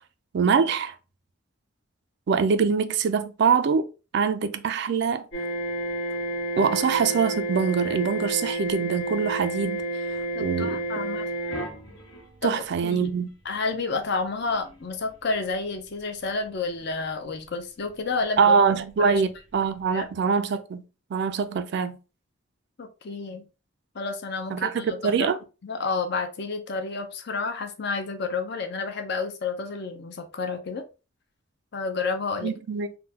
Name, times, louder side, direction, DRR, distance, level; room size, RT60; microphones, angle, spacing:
voice 1, 0.3-1.0 2.3-3.9 4.1-5.3 6.6-9.8 10.4-10.8 12.4-13.3 18.4-20.8 21.1-22.0 24.5-25.4 32.4-32.9, right 6 dB, 60° right, 0.3 m, -24 dB
sound 1, 5.3-12.7 13.7-13.9 14.4-14.7 16.8-16.9, right 1 dB, 80° left, 1.4 m, -31 dB
voice 2, 10.3-11.3 12.4-13.1 13.5-18.5 19.1-19.2 19.9-20.1 22.8-23.5 23.9-25.3 25.6-30.8 31.7-32.5, left 4 dB, 55° left, 0.5 m, -30 dB
3.7 x 2.2 x 2.7 m
head